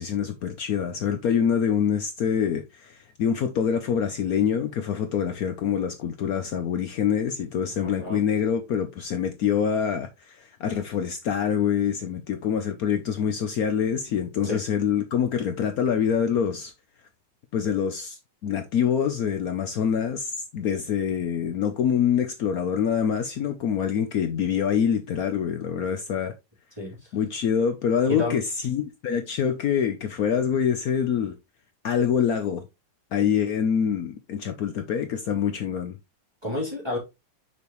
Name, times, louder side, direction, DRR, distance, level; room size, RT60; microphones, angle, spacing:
voice 1, 0.0-16.7 17.5-26.3 27.1-31.3 31.8-32.6 33.1-35.9, left 8 dB, 90° left, 0.7 m, -25 dB
voice 2, 7.7-8.2 14.4-14.6 26.8-27.1 28.1-28.4 36.4-37.0, left 1 dB, 10° right, 3.6 m, -30 dB
6.2 x 5.6 x 3.0 m
omnidirectional pair, 2.4 m